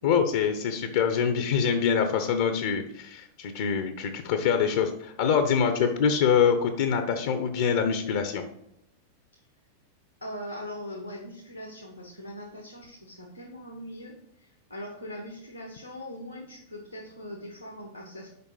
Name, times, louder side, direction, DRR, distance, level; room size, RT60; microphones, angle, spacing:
voice 1, 0.0-8.4, left 7 dB, 55° left, 7 dB, 0.8 m, -25 dB
voice 2, 10.2-18.3, equal, 90° left, -1 dB, 1.5 m, -41 dB
6.8 x 5.1 x 4.9 m, 0.81 s
figure-of-eight pair, 90°, 0 cm